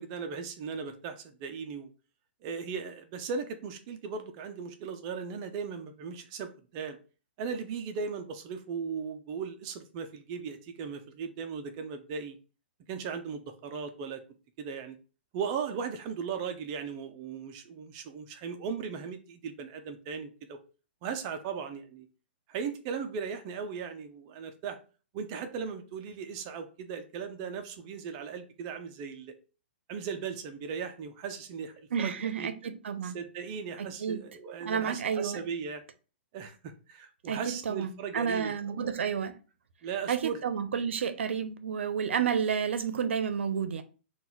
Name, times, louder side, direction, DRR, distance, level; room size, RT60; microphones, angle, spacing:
voice 1, 0.0-1.9 2.4-7.0 7.4-12.4 12.9-14.2 14.6-15.0 15.3-20.6 21.0-22.1 22.5-24.8 25.1-29.3 29.9-32.5 33.1-35.8 36.3-38.9 39.8-40.4, right 6 dB, 30° right, 0.5 m, -37 dB
voice 2, 31.9-33.2 33.8-34.2 34.6-35.4 37.3-39.4 40.1-43.8, right 7 dB, 80° right, 0.6 m, -31 dB
3.8 x 2.3 x 4.4 m
hypercardioid pair, 155°, 6 cm